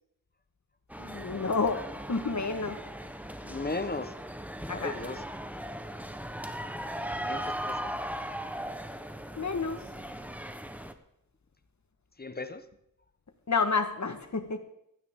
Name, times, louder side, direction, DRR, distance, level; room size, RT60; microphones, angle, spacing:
sound 1, 0.9-10.9, equal, 5° right, 1.0 m, -38 dB
voice 1, 1.0-2.8 4.7-4.9 8.6-8.7 9.4-9.8 13.5-14.6, left 4 dB, 60° left, 7 dB, 1.5 m, -30 dB
voice 2, 3.4-4.1 4.7-5.2 7.1-8.1 12.2-12.7, left 3 dB, 30° left, 10 dB, 1.1 m, -36 dB
15.5 x 12.5 x 3.7 m, 0.77 s
wide cardioid pair, 65°, 32 cm